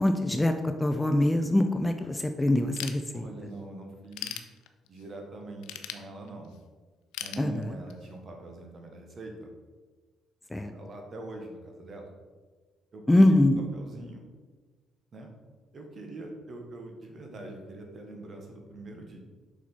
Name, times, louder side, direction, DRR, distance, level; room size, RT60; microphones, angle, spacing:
voice 1, 0.0-3.2 7.4-7.7 10.5-10.7 13.1-13.7, left 1 dB, 10° left, 6 dB, 0.5 m, -24 dB
Ratchet pawl / Tools, 2.8-3.6 3.9-5.1 5.6-6.6 7.1-8.1, left 11 dB, 85° left, 0.4 m, -39 dB
voice 2, 3.1-4.5 4.9-6.5 7.2-9.5 10.7-12.1 12.9-13.4 13.7-14.3 15.1-15.3 15.7-19.2, right 2 dB, 45° right, 2 dB, 1.4 m, -43 dB
5.9 x 4.4 x 4.2 m, 1.3 s
supercardioid pair, 75°, 0 cm